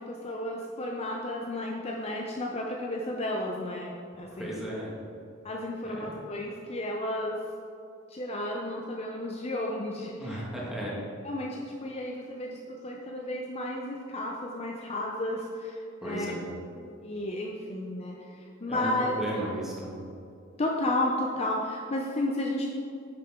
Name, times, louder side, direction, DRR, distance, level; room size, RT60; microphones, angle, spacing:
voice 1, 0.0-4.6 5.4-7.4 8.1-10.4 11.2-16.3 17.0-19.2 20.6-22.7, left 1 dB, 30° left, -1 dB, 0.6 m, -33 dB
voice 2, 4.3-4.9 5.8-6.1 10.2-10.9 16.0-16.5 18.7-19.9, right 1 dB, ahead, -6 dB, 2.0 m, -35 dB
10.0 x 7.4 x 3.7 m, 2.5 s
head